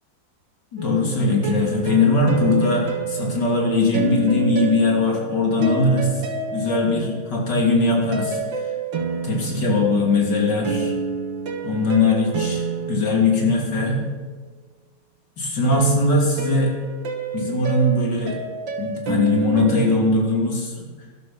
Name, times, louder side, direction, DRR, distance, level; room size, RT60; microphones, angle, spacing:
voice 1, 0.7-6.2 6.5-8.4 9.2-10.9 11.6-14.0 15.4-16.7 17.3-18.4 18.8-20.9, left 2 dB, 60° left, -1 dB, 3.5 m, -20 dB
sound 1, 0.8-7.4 8.1-14.0 15.7-20.2, right 5 dB, 70° right, 2.2 m, -29 dB
13.5 x 11.5 x 5.8 m, 1.4 s
omnidirectional pair, 2.1 m